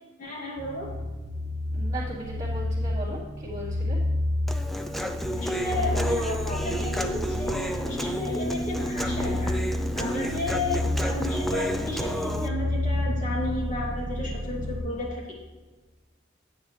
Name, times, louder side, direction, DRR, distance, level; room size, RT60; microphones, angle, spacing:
voice 1, 0.2-0.9 5.4-9.6 10.0-15.3, left 1 dB, 45° left, -4 dB, 2.7 m, -33 dB
sound 1, 0.6-14.8, left 1 dB, 40° right, 1.7 m, -30 dB
voice 2, 1.7-4.0, right 1 dB, 20° right, -14 dB, 2.8 m, -37 dB
Human voice, 4.5-12.5, equal, ahead, 0.5 m, -30 dB
10.0 x 9.2 x 3.2 m, 1.3 s
head